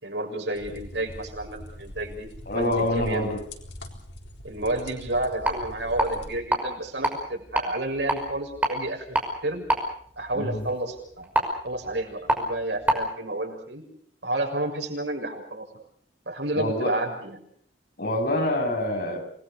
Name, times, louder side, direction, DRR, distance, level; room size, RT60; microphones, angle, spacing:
voice 1, 0.0-2.3 2.5-3.2 4.4-9.2 9.4-9.6 10.2-13.8 14.2-15.7 16.2-17.4, right 1 dB, 80° right, 4 dB, 6.6 m, -30 dB
sound 1, 0.5-6.4, left 1 dB, 85° left, 4.2 m, -42 dB
voice 2, 2.5-3.4 10.3-10.6 16.6-17.0 18.0-19.2, left 1 dB, 60° left, 3 dB, 7.5 m, -26 dB
sound 2, 5.3-13.1, right 1 dB, 10° right, 5.8 m, -29 dB
27.5 x 20.5 x 6.9 m, 0.64 s
head